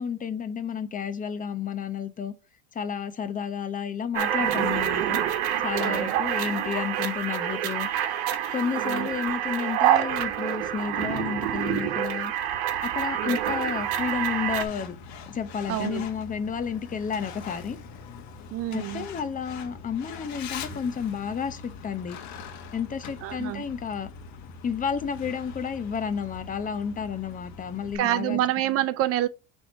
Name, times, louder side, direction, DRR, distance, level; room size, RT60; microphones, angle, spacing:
voice 1, 0.0-2.3 2.7-5.2 5.6-7.9 8.5-12.3 12.8-15.0 15.3-17.8 18.7-22.2 22.7-24.1 24.6-28.4, left 7 dB, 25° left, 0.8 m, -31 dB
sound 1, 4.1-14.6, right 10 dB, 90° right, 1.1 m, -27 dB
voice 2, 5.8-6.2 8.8-9.1 13.2-13.4 15.7-16.1 18.5-19.1 23.2-23.6 27.9-29.3, right 13 dB, 50° right, 0.5 m, -27 dB
Truck, 13.4-28.0, left 5 dB, 60° left, 1.3 m, -42 dB
5.8 x 3.5 x 5.1 m
supercardioid pair, 120°, 31 cm